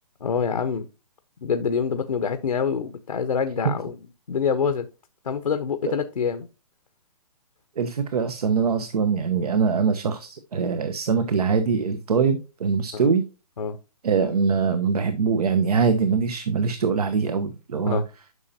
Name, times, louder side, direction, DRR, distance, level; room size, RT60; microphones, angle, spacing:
voice 1, 0.2-0.9 1.4-4.0 4.3-4.8 5.2-6.5 12.9-13.1 13.6-13.8 17.9-18.0, left 6 dB, 85° left, 1.1 m, -25 dB
voice 2, 7.8-13.3 14.0-18.0, right 5 dB, 70° right, 1.1 m, -23 dB
9.5 x 5.7 x 2.8 m
hypercardioid pair, 150°, 20 cm